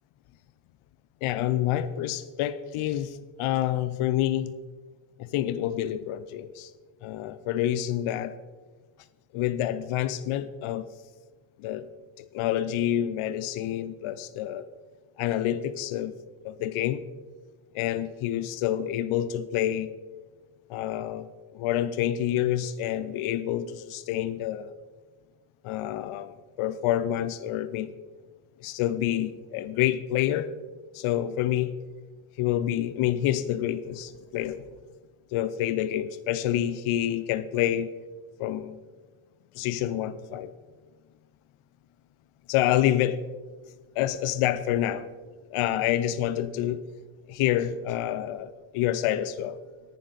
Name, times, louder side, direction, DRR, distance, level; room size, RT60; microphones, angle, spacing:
voice 1, 1.2-4.5 5.2-6.7 7.0-8.3 9.3-10.8 11.6-11.9 12.2-14.6 15.2-16.1 16.4-17.0 17.7-19.9 20.7-21.3 21.5-24.7 25.6-27.9 28.6-30.5 30.9-31.8 32.4-34.6 35.3-37.9 38.4-38.8 39.5-40.5 42.5-43.2 44.0-45.1 45.5-46.8 47.3-49.6, left 12 dB, 75° left, 12 dB, 0.6 m, -28 dB
10.5 x 9.9 x 3.9 m, 1.4 s
cardioid pair, 110°, 50 cm